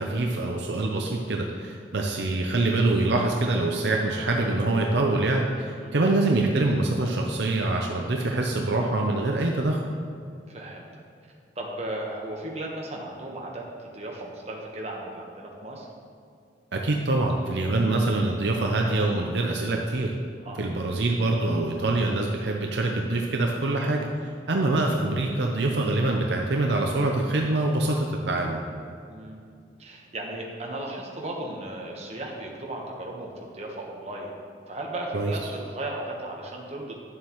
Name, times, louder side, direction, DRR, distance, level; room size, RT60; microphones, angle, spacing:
voice 1, 0.0-9.8 16.7-20.1 20.6-24.1 24.5-28.6 35.1-35.3, right 2 dB, 65° right, 1 dB, 0.6 m, -25 dB
voice 2, 10.5-11.0 11.5-15.9 20.4-20.6 29.1-29.4 29.8-34.4 34.7-36.9, right 1 dB, 35° right, -1 dB, 1.2 m, -36 dB
11.0 x 7.4 x 3.1 m, 2.4 s
head